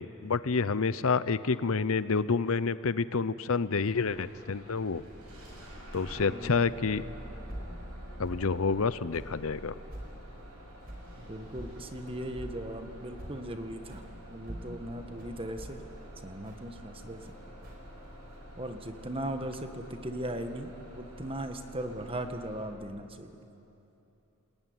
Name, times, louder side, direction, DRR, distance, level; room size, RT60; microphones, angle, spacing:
voice 1, 0.0-5.0 5.9-7.0 8.2-9.7, left 4 dB, 65° left, 15 dB, 0.7 m, -28 dB
Bus / Engine starting, 3.9-22.6, equal, 90° right, 7.9 m, -48 dB
voice 2, 6.1-6.6 11.2-14.0 14.3-15.8 16.2-17.2 18.6-23.3, right 1 dB, 25° right, 7 dB, 1.6 m, -38 dB
sound 1, 7.5-7.8 8.3-8.5 9.1-9.4 9.9-10.1 10.9-11.1 11.5-11.7 12.4-12.6 13.2-13.5 13.9-14.1 14.5-17.3 17.6-18.4, right 1 dB, 45° right, 5.3 m, -44 dB
28.5 x 20.5 x 9.6 m, 2.9 s
head